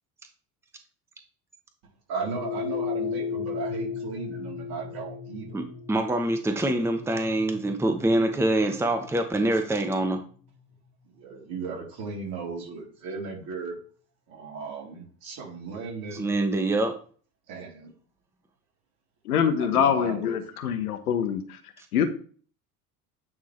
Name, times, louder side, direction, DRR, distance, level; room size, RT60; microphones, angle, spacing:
voice 1, 2.1-5.6 11.1-13.8 14.3-16.3 17.5-17.9 19.6-20.3, right 5 dB, 55° right, -2 dB, 3.3 m, -36 dB
sound 1, 2.3-10.8, left 7 dB, 50° left, 1.5 m, -36 dB
voice 2, 5.5-10.2 16.1-16.9 21.8-21.9, right 1 dB, 5° right, 6 dB, 0.9 m, -25 dB
voice 3, 19.3-21.4 21.9-22.0, left 8 dB, 85° left, 8 dB, 1.1 m, -24 dB
9.2 x 3.7 x 3.2 m, 0.43 s
hypercardioid pair, 75°, 44 cm